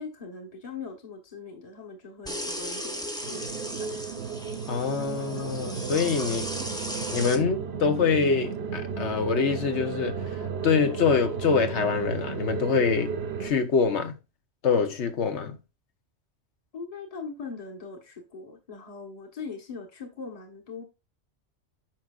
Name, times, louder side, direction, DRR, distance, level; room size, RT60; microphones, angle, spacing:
voice 1, 0.0-4.4 6.6-6.8 16.7-20.8, left 4 dB, 30° left, 1.4 m, -41 dB
sound 1, 2.3-7.4, equal, 5° left, 1.0 m, -36 dB
sound 2, 3.2-13.5, right 6 dB, 60° right, 1.0 m, -34 dB
voice 2, 4.7-6.5 7.1-10.2 10.6-13.1 13.4-14.1 14.6-15.6, left 5 dB, 65° left, 1.3 m, -25 dB
9.1 x 6.1 x 2.5 m
omnidirectional pair, 1.3 m